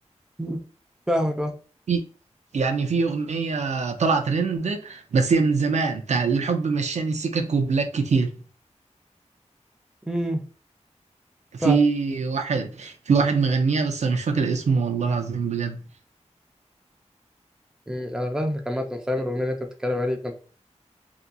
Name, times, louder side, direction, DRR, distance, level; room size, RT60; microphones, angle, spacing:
voice 1, 1.1-1.5 10.1-10.4 11.6-11.8 17.9-20.3, equal, 5° right, 0.5 m, -26 dB
voice 2, 2.5-8.4 11.5-15.8, right 5 dB, 70° right, 0.4 m, -23 dB
2.7 x 2.3 x 2.2 m
wide cardioid pair, 75°, 12 cm